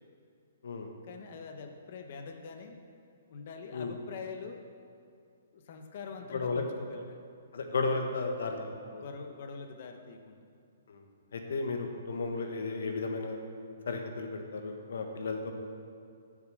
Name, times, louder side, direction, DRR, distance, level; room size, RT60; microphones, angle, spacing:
voice 1, 1.0-2.8 3.3-4.7 5.5-7.2 8.9-10.4, left 5 dB, 40° left, 5 dB, 1.1 m, -44 dB
voice 2, 6.3-6.6 7.5-9.0 10.9-11.0 11.3-13.4 13.9-15.5, left 3 dB, 70° left, 4 dB, 1.5 m, -34 dB
9.7 x 7.5 x 7.7 m, 2.4 s
hypercardioid pair, 175°, 0 cm